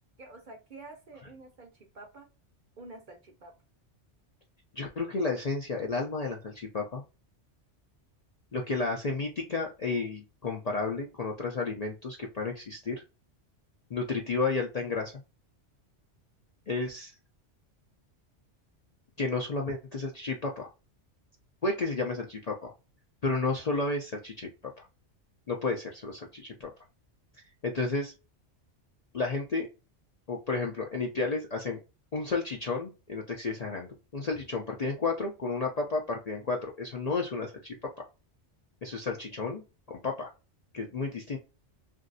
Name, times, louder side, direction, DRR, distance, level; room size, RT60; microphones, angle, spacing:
voice 1, 0.2-2.3 2.8-3.5, right 2 dB, 50° right, 4 dB, 0.7 m, -48 dB
voice 2, 4.7-7.0 8.5-13.0 13.9-15.1 16.7-17.1 19.2-20.7 21.6-22.7 23.2-24.5 24.8-24.9 25.5-26.7 27.6-28.1 29.1-29.7 30.3-31.8 32.1-37.9 38.8-40.3 40.7-41.4, left 3 dB, 50° left, 0 dB, 0.5 m, -32 dB
3.0 x 2.6 x 2.6 m, 0.29 s
omnidirectional pair, 1.2 m